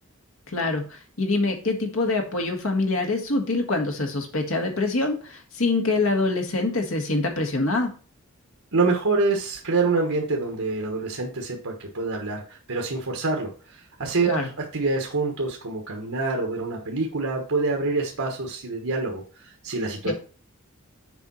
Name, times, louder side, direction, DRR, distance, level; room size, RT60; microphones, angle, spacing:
voice 1, 0.5-7.9 14.3-14.5 20.1-20.2, left 2 dB, 70° left, 4 dB, 1.8 m, -25 dB
voice 2, 8.7-20.1, right 3 dB, 75° right, 1 dB, 1.4 m, -26 dB
7.0 x 4.6 x 5.5 m, 0.38 s
head